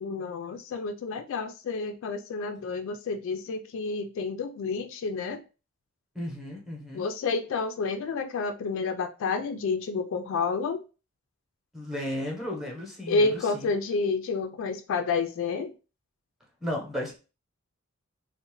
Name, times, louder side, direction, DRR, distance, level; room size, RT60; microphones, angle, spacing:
voice 1, 0.0-5.4 6.9-10.8 13.1-15.7, left 4 dB, 65° left, 0.3 m, -29 dB
voice 2, 6.1-7.1 11.7-13.7 16.6-17.2, left 1 dB, ahead, 0.8 m, -34 dB
2.6 x 2.0 x 2.9 m
head